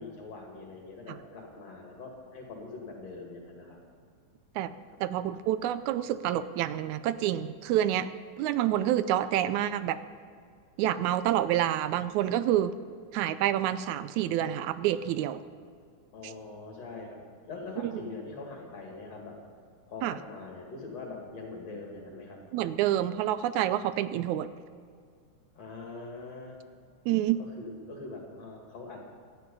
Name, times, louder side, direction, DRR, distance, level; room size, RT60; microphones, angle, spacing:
voice 1, 0.0-3.8 5.1-5.2 16.1-17.2 17.5-19.4 19.9-22.4 25.5-26.6 27.4-29.0, left 3 dB, 60° left, 0 dB, 3.2 m, -43 dB
voice 2, 5.0-8.1 8.4-10.0 10.8-12.8 13.1-15.4 16.2-16.3 17.8-17.9 20.0-20.1 22.5-24.5 27.1-27.4, right 12 dB, 80° right, 13 dB, 1.8 m, -28 dB
17.0 x 12.5 x 5.4 m, 2.2 s
omnidirectional pair, 3.5 m